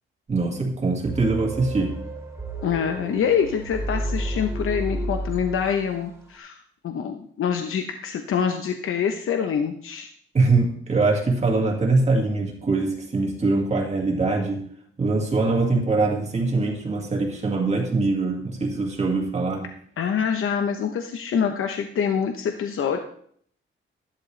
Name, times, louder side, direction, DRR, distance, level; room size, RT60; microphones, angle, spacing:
voice 1, 0.3-2.0 10.3-14.7 15.0-19.7, right 3 dB, 30° right, 0 dB, 1.9 m, -23 dB
sound 1, 1.0-6.0, right 1 dB, 15° right, 2.2 m, -31 dB
voice 2, 2.6-10.1 20.0-23.0, left 7 dB, 80° left, 5 dB, 0.9 m, -25 dB
13.5 x 11.5 x 3.3 m, 0.62 s
wide cardioid pair, 170°, 21 cm